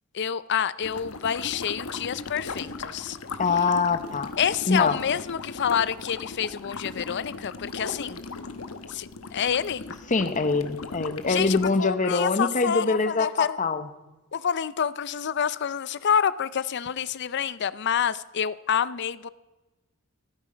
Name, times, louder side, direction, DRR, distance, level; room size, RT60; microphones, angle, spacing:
voice 1, 0.1-3.2 4.4-8.2 8.9-9.8 11.2-13.6 14.3-19.3, left 8 dB, 55° left, 17 dB, 0.5 m, -28 dB
sound 1, 0.8-11.7, left 3 dB, 75° left, 1.0 m, -38 dB
voice 2, 3.4-4.3 4.7-5.0 10.1-13.9, left 4 dB, 35° left, 10 dB, 0.9 m, -24 dB
15.0 x 12.5 x 5.1 m, 1.1 s
head